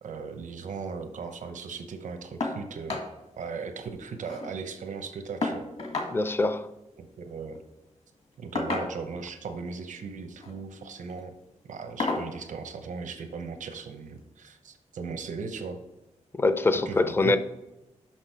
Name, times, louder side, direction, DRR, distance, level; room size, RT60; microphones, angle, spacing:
voice 1, 0.0-3.0 3.4-5.6 7.0-7.6 8.4-11.3 11.7-15.8 16.7-17.4, right 5 dB, 85° right, 6 dB, 0.8 m, -37 dB
sound 1, 2.4-2.6 2.9-3.1 3.5-3.6 3.8-4.5 5.4-6.1 7.4-7.6 8.5-9.2 10.2-10.6 11.0-11.2 12.0-12.3 13.6-13.7 14.2-14.3, left 3 dB, 55° left, 1.8 m, -31 dB
voice 2, 6.1-6.7 16.4-17.4, left 3 dB, 20° left, 11 dB, 0.4 m, -24 dB
6.2 x 6.0 x 4.6 m, 0.93 s
wide cardioid pair, 140°, 13 cm